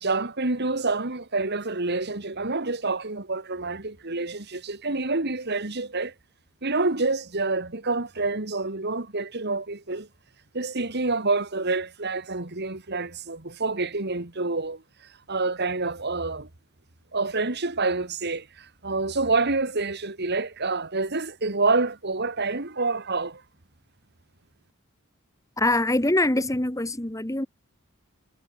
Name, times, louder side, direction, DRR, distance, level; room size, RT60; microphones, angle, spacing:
voice 1, 0.0-6.1 6.6-10.1 10.5-14.8 15.3-16.5 17.1-23.4, right 3 dB, 55° right, 2.5 m, -27 dB
voice 2, 25.6-27.5, left 2 dB, 15° left, 1.7 m, -24 dB
head